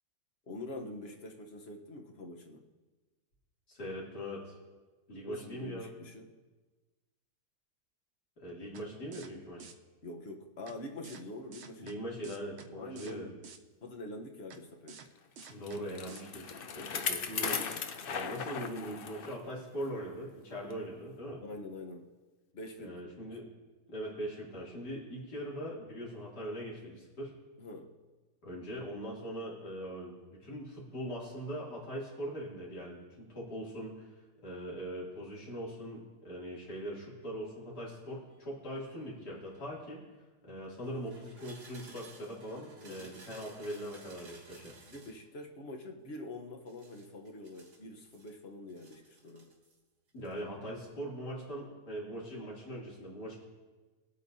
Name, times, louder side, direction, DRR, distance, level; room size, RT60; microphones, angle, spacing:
voice 1, 0.4-2.6 5.3-6.3 10.0-11.9 12.8-13.4 13.8-15.0 17.6-17.8 21.4-22.1 22.5-23.3 27.6-27.9 42.8-43.1 44.9-49.5, left 2 dB, 45° left, 3 dB, 1.1 m, -45 dB
voice 2, 3.7-4.5 5.1-5.9 8.4-9.7 11.8-13.3 15.5-17.6 18.0-21.4 22.8-23.5 23.9-27.3 28.4-34.1 34.4-40.0 40.4-44.7 50.1-53.4, equal, 90° left, -5 dB, 3.3 m, -41 dB
sound 1, 8.7-8.8 9.1-9.3 9.6-9.7 10.7-10.8 11.0-11.2 11.5-11.9 12.2-12.7 13.0-13.1 13.4-13.6 14.5-14.6 14.9-15.1 15.4-15.8 16.1-16.2, right 6 dB, 55° right, 0.8 m, -50 dB
Bicycle, 15.4-19.4 19.8-19.9 20.7-20.8, left 6 dB, 60° left, 0.5 m, -37 dB
sound 2, 38.0-40.0 40.8-45.2 46.7-48.3 48.7-49.8 50.1-50.4, right 3 dB, 85° right, 2.3 m, -57 dB
21.0 x 8.4 x 2.7 m, 1.3 s
omnidirectional pair, 1.7 m